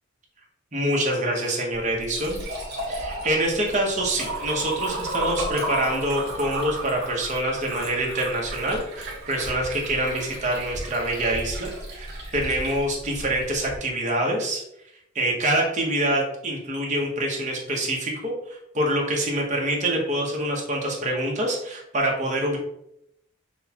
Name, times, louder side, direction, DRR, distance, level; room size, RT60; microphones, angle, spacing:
voice 1, 0.7-2.4 2.9-14.6 15.1-22.6, right 1 dB, 35° right, -1 dB, 1.0 m, -26 dB
Liquid, 1.7-13.8, right 1 dB, 55° right, 1.5 m, -33 dB
6.2 x 2.3 x 2.9 m, 0.77 s
head